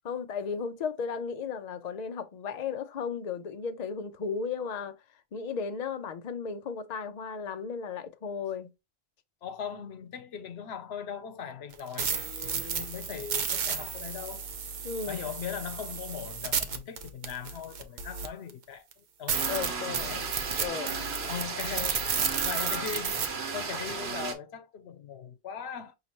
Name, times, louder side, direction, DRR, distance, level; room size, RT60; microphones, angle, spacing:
voice 1, 0.0-5.0 5.3-8.7 14.8-15.3 19.4-20.1 20.6-21.0, left 6 dB, 50° left, 0.7 m, -35 dB
voice 2, 9.4-14.5 15.1-20.3 20.6-26.0, left 7 dB, 80° left, 0.9 m, -40 dB
sound 1, 11.7-18.5 18.9-19.0 19.3-23.3, right 6 dB, 55° right, 0.7 m, -33 dB
sound 2, 19.3-24.3, right 4 dB, 90° right, 1.2 m, -35 dB
5.5 x 2.9 x 2.9 m
omnidirectional pair, 1.0 m